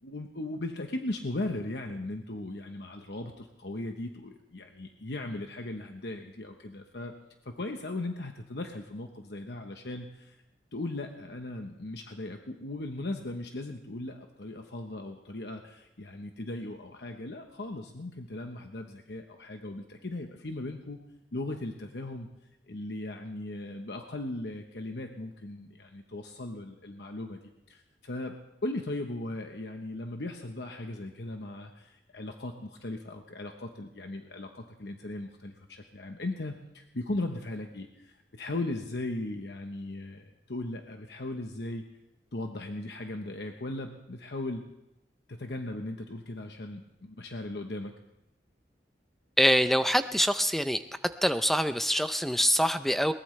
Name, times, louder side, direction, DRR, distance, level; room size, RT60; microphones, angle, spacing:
voice 1, 0.0-7.1 7.4-10.4 10.7-21.0 21.3-22.3 22.7-27.4 27.7-28.4 28.6-41.8 42.3-44.6 45.3-47.9, left 2 dB, 70° left, 4 dB, 1.0 m, -38 dB
voice 2, 49.4-50.8 51.2-53.1, equal, ahead, 10 dB, 0.5 m, -25 dB
21.5 x 19.0 x 3.3 m, 0.89 s
head